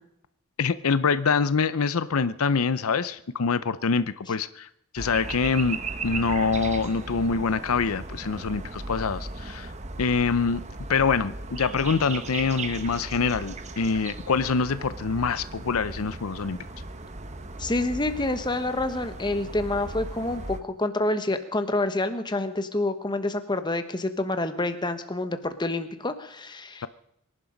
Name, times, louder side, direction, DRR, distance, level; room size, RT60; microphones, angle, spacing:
voice 1, 0.6-4.7 4.9-9.7 10.0-10.6 10.9-16.6, left 5 dB, 80° left, 15 dB, 0.6 m, -25 dB
sound 1, 5.0-20.6, right 3 dB, 35° right, 1.0 m, -37 dB
voice 2, 17.6-26.8, left 2 dB, 20° left, 9 dB, 1.2 m, -28 dB
24.5 x 11.0 x 5.2 m, 0.75 s
head